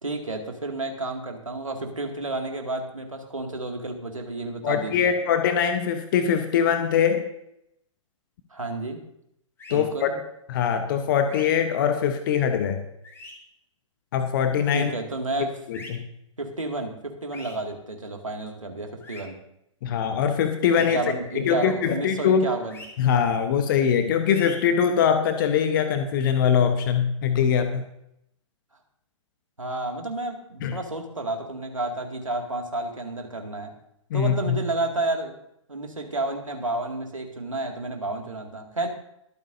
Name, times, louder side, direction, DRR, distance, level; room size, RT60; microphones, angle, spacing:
voice 1, 0.0-5.1 8.5-9.0 9.7-10.2 14.7-15.5 16.4-19.3 20.8-22.8 29.6-33.7 34.1-35.4 35.7-38.9, right 2 dB, 80° right, 3 dB, 2.2 m, -31 dB
voice 2, 4.6-7.3 9.7-10.2 10.5-12.8 14.1-14.9 15.7-16.1 19.8-21.0 21.3-22.5 23.0-27.8 30.6-30.8 34.1-34.6, left 7 dB, 40° left, 8 dB, 1.0 m, -22 dB
sound 1, 9.6-9.8 11.2-11.5 13.0-13.3 15.7-15.9 17.3-17.6 19.0-19.2 20.7-20.9 22.7-22.9 24.3-24.6, left 2 dB, 15° left, 2.0 m, -42 dB
22.0 x 8.9 x 2.7 m, 0.77 s
figure-of-eight pair, 120°, 17 cm